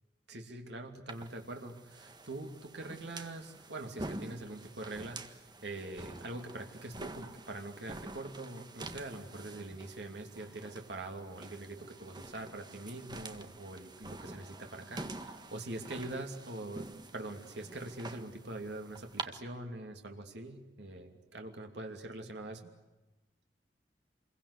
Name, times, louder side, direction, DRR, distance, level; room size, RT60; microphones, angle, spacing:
voice 1, 0.3-16.9 17.1-22.7, right 2 dB, 70° right, 3 dB, 2.8 m, -43 dB
sound 1, 1.1-19.2, right 2 dB, 25° right, 1.5 m, -47 dB
27.5 x 22.5 x 8.4 m, 1.1 s
head